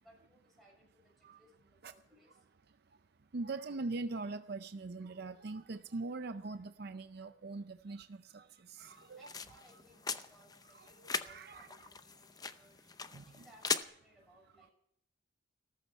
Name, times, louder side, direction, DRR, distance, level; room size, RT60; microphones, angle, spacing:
voice 1, 0.0-2.4 9.1-12.7 13.2-14.7, right 1 dB, ahead, -1 dB, 6.4 m, -65 dB
voice 2, 2.7-3.0 3.3-9.3 10.7-11.9 12.5-12.6 13.1-13.4, right 3 dB, 55° right, 10 dB, 0.6 m, -42 dB
sound 1, 8.8-13.8, left 5 dB, 20° left, 0.6 m, -41 dB
15.0 x 13.5 x 5.5 m, 0.70 s
head